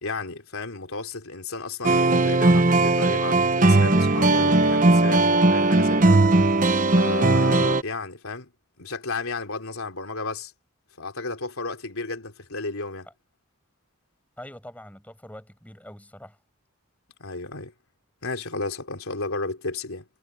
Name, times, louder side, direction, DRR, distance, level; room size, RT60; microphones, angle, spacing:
voice 1, 0.0-6.2 6.9-8.5 8.8-10.5 11.0-13.1 17.2-17.7 18.2-20.1, left 3 dB, 85° left, 3.5 m, -33 dB
sound 1, 1.8-7.8, right 2 dB, 40° right, 0.9 m, -18 dB
voice 2, 14.4-16.4, left 1 dB, 5° left, 6.2 m, -43 dB
head